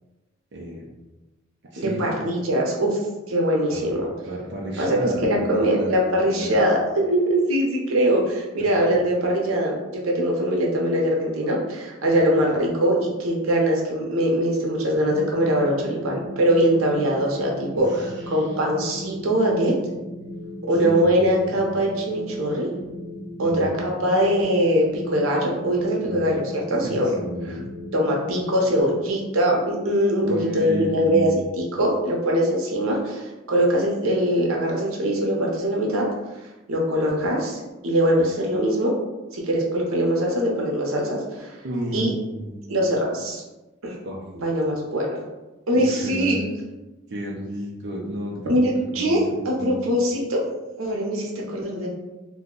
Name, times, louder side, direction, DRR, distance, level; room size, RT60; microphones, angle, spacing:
voice 1, 0.5-0.9 1.7-2.0 3.7-3.9 4.3-6.7 17.7-18.6 20.7-21.3 23.4-23.8 26.0-26.3 26.8-27.6 30.2-31.4 41.6-42.8 44.0-44.2 45.7-46.4 47.1-49.8, right 1 dB, 55° right, -3 dB, 0.5 m, -32 dB
voice 2, 1.8-3.0 3.3-4.1 4.8-5.0 5.2-19.7 20.7-22.7 23.4-27.1 27.9-30.2 30.5-31.3 31.6-36.1 36.7-38.9 39.3-41.6 41.9-42.1 42.7-43.4 43.8-44.0 44.4-45.2 45.7-46.4 48.5-49.2 49.4-50.4 50.8-51.9, equal, 90° right, -1 dB, 0.7 m, -22 dB
sound 1, 14.9-28.8, left 1 dB, 50° left, 1.1 m, -37 dB
2.6 x 2.1 x 3.7 m, 1.1 s
head